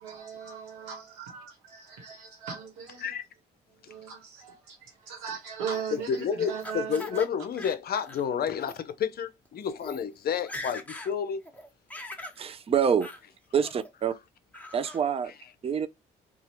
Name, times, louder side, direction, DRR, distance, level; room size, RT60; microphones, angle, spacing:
voice 1, 0.0-3.1 3.9-7.2, right 7 dB, 85° right, 1.2 m, -38 dB
Laughter, 5.7-7.3 7.6-8.2 8.6-8.8 9.5-9.6 9.8-10.0 10.3-11.1 11.5-12.4 13.0-13.2 13.6-14.1 14.5-15.0, left 2 dB, 10° left, 1.0 m, -42 dB
voice 2, 5.9-11.4, left 7 dB, 50° left, 0.6 m, -30 dB
voice 3, 12.4-13.1 13.5-14.1 14.7-15.3 15.6-15.9, right 7 dB, 30° right, 0.5 m, -26 dB
2.8 x 2.4 x 3.0 m
hypercardioid pair, 55°, 20 cm